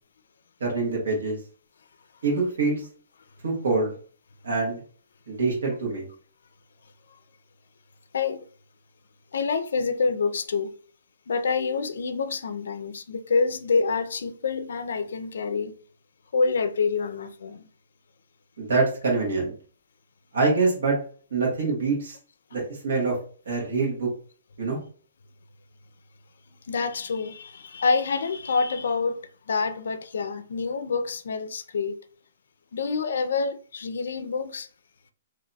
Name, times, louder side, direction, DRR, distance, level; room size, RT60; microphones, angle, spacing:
voice 1, 0.6-1.4 2.2-2.8 3.4-3.9 4.4-4.8 5.3-6.1 18.6-19.5 20.3-21.0 21.3-22.2 22.5-23.1 23.4-24.1 24.6-24.8, right 3 dB, 75° right, 1.2 m, -25 dB
voice 2, 8.1-8.5 9.3-10.7 11.3-15.7 16.3-17.7 26.7-32.0 32.7-34.7, left 4 dB, 75° left, 0.4 m, -27 dB
3.9 x 2.7 x 2.2 m
hypercardioid pair, 180°, 0 cm